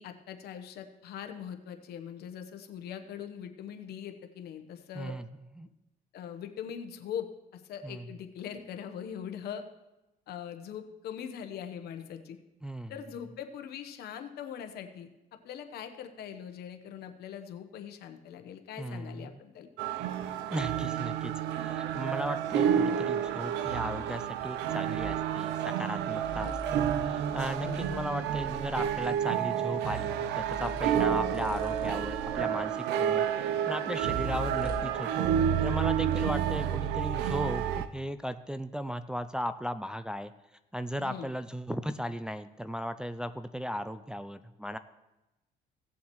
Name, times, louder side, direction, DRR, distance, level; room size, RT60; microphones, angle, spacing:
voice 1, 0.0-5.1 6.1-9.6 10.3-12.4 12.9-15.1 15.4-19.7 26.3-26.6 27.6-28.0 41.0-41.3, left 8 dB, 70° left, 7 dB, 1.1 m, -41 dB
voice 2, 4.9-5.3 5.6-5.7 7.8-8.1 12.6-12.9 18.8-19.3 20.5-33.2 33.7-35.3 35.6-37.6 37.9-40.3 40.7-44.8, equal, 5° right, 9 dB, 0.4 m, -36 dB
sound 1, 19.8-37.9, right 9 dB, 85° right, 0.6 m, -30 dB
sound 2, 25.0-25.3 26.2-29.2 30.4-32.6 34.0-35.1, right 1 dB, 60° right, 1.4 m, -42 dB
17.5 x 7.1 x 3.1 m, 0.99 s
cardioid pair, 110°, 17 cm